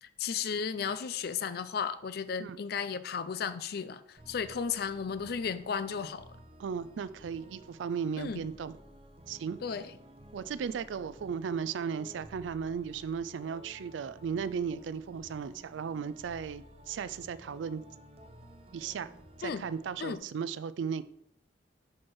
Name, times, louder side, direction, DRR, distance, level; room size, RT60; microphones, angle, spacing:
voice 1, 0.0-6.3 8.2-8.5 9.6-9.9 19.4-19.7 20.0-20.2, left 6 dB, 55° left, 0.4 m, -34 dB
sound 1, 4.2-20.2, equal, 35° right, 0.7 m, -54 dB
voice 2, 6.6-8.8 9.3-9.6 10.3-17.8 18.7-19.1 19.4-21.0, right 6 dB, 85° right, 0.4 m, -36 dB
6.1 x 4.3 x 4.7 m
head